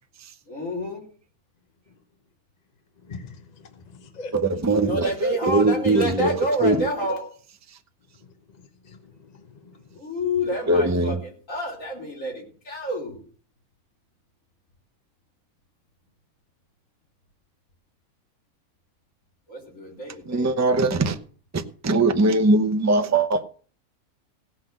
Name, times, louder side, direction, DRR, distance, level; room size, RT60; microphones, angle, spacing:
voice 1, 0.5-1.0 4.8-7.3 9.9-13.3 19.5-20.8, equal, 60° left, 4.5 m, -29 dB
voice 2, 3.1-4.7 8.8-10.0, left 3 dB, 35° left, 0.9 m, -43 dB
voice 3, 4.3-6.3 6.6-6.9 10.7-11.2 20.3-21.2 21.5-23.5, right 2 dB, 15° right, 0.7 m, -21 dB
16.0 x 5.9 x 7.7 m
omnidirectional pair, 1.5 m